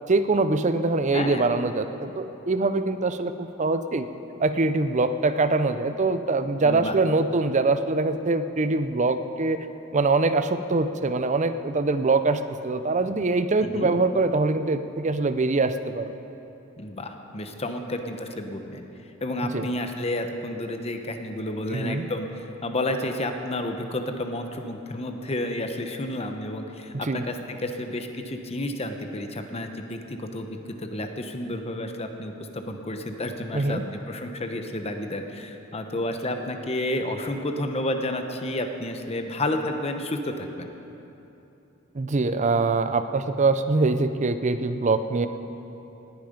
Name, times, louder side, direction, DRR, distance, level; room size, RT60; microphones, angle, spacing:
voice 1, 0.1-4.1 4.4-9.7 9.9-16.1 19.5-19.7 21.7-22.0 26.9-27.3 33.5-33.8 41.9-45.3, right 3 dB, 35° right, 10 dB, 0.6 m, -23 dB
voice 2, 1.1-1.4 6.6-6.9 13.6-13.9 16.8-18.8 19.2-33.8 34.1-40.7, left 1 dB, 30° left, 5 dB, 0.9 m, -31 dB
19.0 x 9.2 x 5.2 m, 3.0 s
head